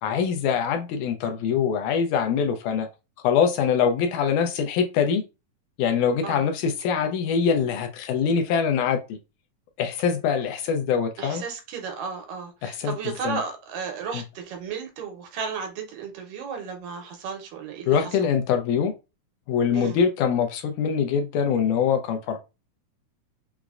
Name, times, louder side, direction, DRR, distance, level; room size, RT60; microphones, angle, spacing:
voice 1, 0.0-2.9 3.2-5.2 5.8-9.2 9.8-11.4 12.6-12.9 13.2-13.4 14.1-14.2 17.9-18.9 19.5-22.4, left 7 dB, 80° left, 1.8 m, -23 dB
voice 2, 11.2-18.1 19.7-20.0, right 6 dB, 90° right, 2.5 m, -34 dB
5.8 x 2.1 x 2.4 m
omnidirectional pair, 3.7 m